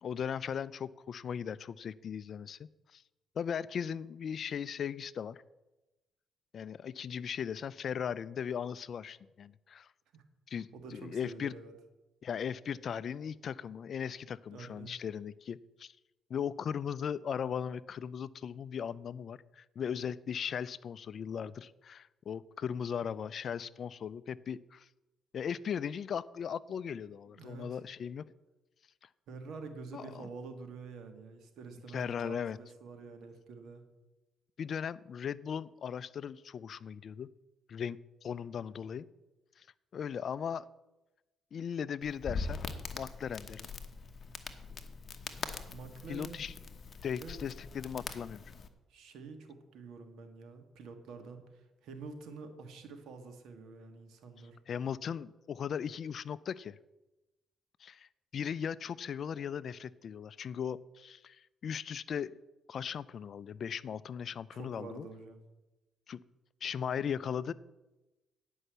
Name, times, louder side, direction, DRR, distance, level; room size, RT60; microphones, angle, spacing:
voice 1, 0.0-3.0 3.4-5.4 6.5-9.9 10.5-11.5 12.2-15.9 16.3-24.9 25.3-28.2 29.9-30.3 31.9-32.6 34.6-37.3 37.7-39.1 39.6-39.7 39.9-40.7 41.5-43.7 46.1-46.5 47.0-48.4 54.7-56.8 57.8-62.3 62.7-65.1 66.1-66.2 66.6-67.5, left 7 dB, 55° left, 19 dB, 0.4 m, -38 dB
voice 2, 10.7-11.7 14.5-14.9 27.3-27.8 29.3-33.8 45.7-46.5 47.1-47.4 48.9-54.6 64.5-65.4, right 4 dB, 80° right, 7 dB, 1.5 m, -47 dB
Crackle, 42.0-48.7, left 4 dB, 40° left, 1.0 m, -42 dB
9.9 x 5.4 x 7.9 m, 1.1 s
cardioid pair, 90°, 0 cm